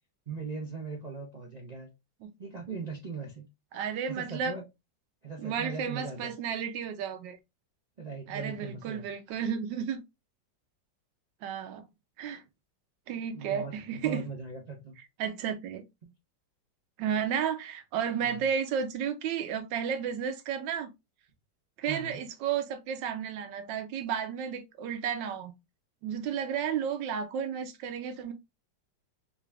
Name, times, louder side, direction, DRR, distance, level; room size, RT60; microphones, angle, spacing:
voice 1, 0.3-1.9 2.4-3.5 4.1-4.6 5.2-6.3 8.0-9.1 13.3-15.0 18.2-18.5 21.8-22.2, right 4 dB, 50° right, 0.5 m, -39 dB
voice 2, 3.7-4.5 5.4-7.4 8.3-10.0 11.4-11.9 12.2-12.4 13.1-14.2 15.2-15.8 17.0-20.9 21.8-25.5 26.0-28.3, right 7 dB, 80° right, 1.3 m, -32 dB
3.9 x 2.4 x 3.2 m
omnidirectional pair, 2.0 m